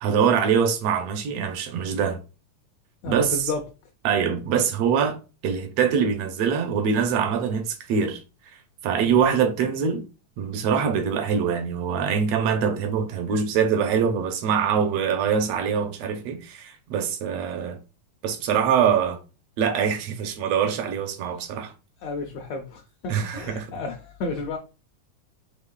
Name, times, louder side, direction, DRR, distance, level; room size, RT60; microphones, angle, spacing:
voice 1, 0.0-2.2 3.1-3.4 4.0-5.2 5.4-8.2 8.8-10.0 10.4-17.8 18.2-19.2 19.6-21.7 23.1-23.7, right 7 dB, 75° right, 1.5 m, -23 dB
voice 2, 3.0-3.6 9.0-9.3 22.0-24.6, left 3 dB, 75° left, 1.5 m, -32 dB
6.4 x 3.1 x 2.3 m
omnidirectional pair, 3.6 m